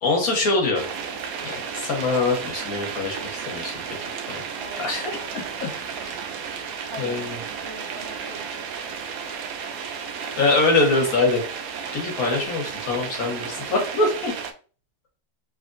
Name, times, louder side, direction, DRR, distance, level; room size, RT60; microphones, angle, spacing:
voice 1, 0.0-0.8 1.4-4.0 4.3-4.4 4.8-5.7 6.0-6.3 7.0-7.4 10.4-11.4 11.9-14.3, left 3 dB, 60° left, 1 dB, 1.4 m, -24 dB
sound 1, 0.7-14.5, right 6 dB, 70° right, 0.9 m, -33 dB
voice 2, 4.6-6.4 6.9-8.5 12.1-12.6, right 1 dB, 45° right, -2 dB, 1.2 m, -42 dB
3.5 x 3.4 x 2.5 m, 0.37 s
omnidirectional pair, 1.9 m